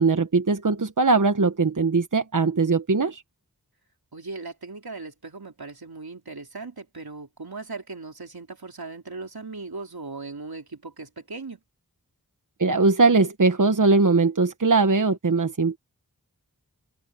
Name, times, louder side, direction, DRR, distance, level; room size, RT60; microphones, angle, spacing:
voice 1, 0.0-3.2 12.6-15.8, right 3 dB, 55° right, 1.2 m, -20 dB
voice 2, 4.1-11.6, right 3 dB, 85° right, 3.7 m, -38 dB
wide cardioid pair, 50°, 36 cm